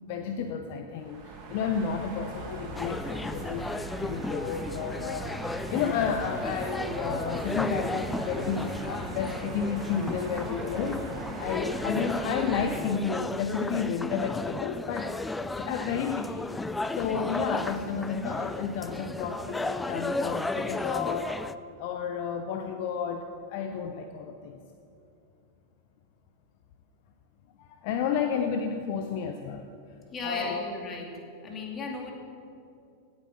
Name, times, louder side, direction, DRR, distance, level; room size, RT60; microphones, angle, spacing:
voice 1, 0.0-5.3 5.7-11.0 11.4-15.1 15.5-16.5 16.9-21.4 21.8-24.6 27.6-29.7 30.2-30.7, left 6 dB, 45° left, 6 dB, 0.8 m, -31 dB
sound 1, 0.9-12.8, right 2 dB, 30° right, 3.4 m, -40 dB
sound 2, 2.8-21.6, left 2 dB, 10° left, 0.4 m, -34 dB
voice 2, 30.1-31.1 31.4-32.1, left 3 dB, 25° left, 1 dB, 2.5 m, -36 dB
17.5 x 8.6 x 6.0 m, 2.6 s
figure-of-eight pair, 90°, 0 cm